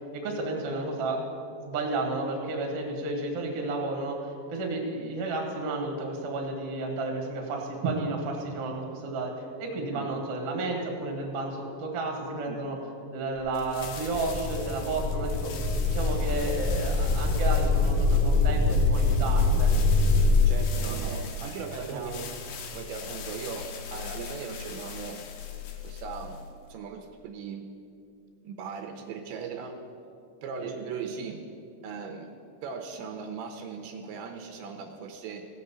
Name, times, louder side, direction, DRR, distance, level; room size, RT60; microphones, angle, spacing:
voice 1, 0.1-1.2 1.6-12.8 13.1-15.5 15.9-20.0 20.7-21.3 21.8-22.1 30.6-30.7, right 2 dB, 50° right, 0 dB, 1.8 m, -32 dB
voice 2, 9.8-10.1 12.5-12.8 20.4-22.3 22.7-25.2 25.8-26.4 26.7-27.7 28.4-29.8 30.4-31.4 31.8-32.3 32.6-35.5, right 5 dB, 80° right, 4 dB, 2.9 m, -38 dB
sound 1, 13.5-26.7, left 7 dB, 70° left, 2.4 m, -41 dB
sound 2, 13.8-20.5, left 3 dB, 15° right, 1.5 m, -24 dB
16.0 x 6.7 x 6.9 m, 2.5 s
omnidirectional pair, 5.5 m